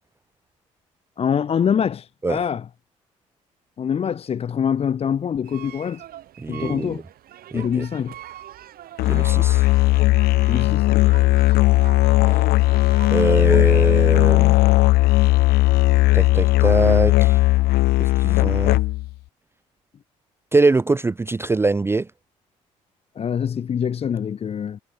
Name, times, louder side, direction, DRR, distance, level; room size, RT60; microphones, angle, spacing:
voice 1, 1.2-2.6 3.8-6.0 6.5-7.0 7.5-8.1 10.5-11.1 23.2-24.8, left 8 dB, 35° left, 0.5 m, -24 dB
sound 1, 5.4-13.8, right 12 dB, 60° right, 3.5 m, -43 dB
voice 2, 6.4-7.0 7.5-7.8 9.1-9.7 13.1-14.6 16.1-17.4 18.0-18.8 20.5-22.1, right 3 dB, 15° right, 0.4 m, -22 dB
Musical instrument, 9.0-19.1, left 19 dB, 70° left, 0.9 m, -17 dB
hypercardioid pair, 50°, 17 cm